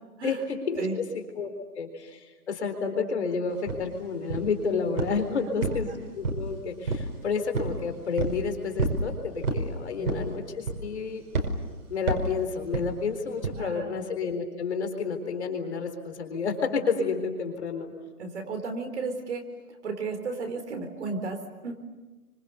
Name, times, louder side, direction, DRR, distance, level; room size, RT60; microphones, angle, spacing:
voice 1, 0.2-1.0 1.4-1.5 1.8-11.2 11.9-17.9, left 5 dB, 45° left, 6 dB, 4.1 m, -30 dB
sound 1, 3.7-3.8 4.3-4.6 5.0-5.2 5.6-6.5 6.9-7.1 7.5-7.8 8.2-8.4 8.8-9.0 9.4-9.7 10.0-10.3 10.7-11.0 11.3-11.5 12.1-12.3 12.7-12.9 13.4-13.6, right 3 dB, 70° right, 5.4 m, -28 dB
voice 2, 10.0-10.3 13.5-14.0 18.2-19.5 19.8-21.9, right 3 dB, 50° right, 5 dB, 4.2 m, -34 dB
29.5 x 25.5 x 6.9 m, 1.2 s
hypercardioid pair, 170°, 45 cm